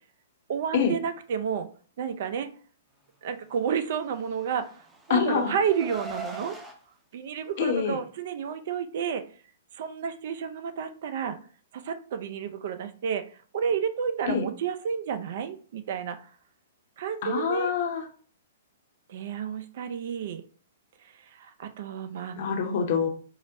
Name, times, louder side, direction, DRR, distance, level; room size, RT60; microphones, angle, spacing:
voice 1, 0.5-1.7 2.0-2.5 3.2-4.7 5.1-6.6 7.1-9.2 9.7-11.4 11.7-13.2 13.5-16.2 17.0-17.7 19.1-20.4 21.2-22.4, right 7 dB, 55° right, 10 dB, 0.4 m, -31 dB
Car, 4.2-6.8, right 2 dB, 10° right, 0.6 m, -41 dB
voice 2, 5.1-5.6 7.6-8.0 14.3-14.4 17.2-18.0 22.3-23.1, left 6 dB, 55° left, 4 dB, 0.7 m, -25 dB
4.7 x 2.1 x 2.6 m, 0.42 s
hypercardioid pair, 120°, 0 cm